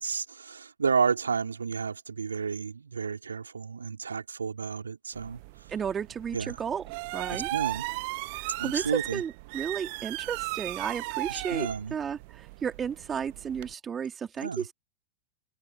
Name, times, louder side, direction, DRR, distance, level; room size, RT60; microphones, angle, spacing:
voice 1, 0.0-5.4 6.3-6.6 7.3-7.8 8.6-9.2 11.3-12.0 14.4-14.6, right 5 dB, 75° right, 4.5 m, -31 dB
sound 1, 5.1-13.7, right 26 dB, 50° right, 1.0 m, -37 dB
voice 2, 5.7-6.8 7.1-7.5 8.3-14.7, right 7 dB, 20° right, 3.4 m, -33 dB
open air
figure-of-eight pair, 90°, 0 cm